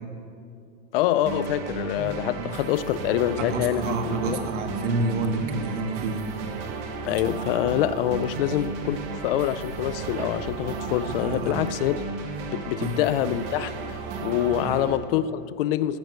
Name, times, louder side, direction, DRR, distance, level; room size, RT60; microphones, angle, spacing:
voice 1, 0.9-4.4 7.0-12.0 12.5-16.0, left 12 dB, 50° left, 0.5 m, -26 dB
sound 1, 1.3-15.0, right 3 dB, 40° right, 1.4 m, -34 dB
voice 2, 3.4-6.3 11.2-11.6 12.8-13.0 14.6-14.8, right 3 dB, 85° right, 1.8 m, -29 dB
sound 2, 7.0-12.1, right 11 dB, 65° right, 0.6 m, -42 dB
15.0 x 9.1 x 6.5 m
supercardioid pair, 170°, 36 cm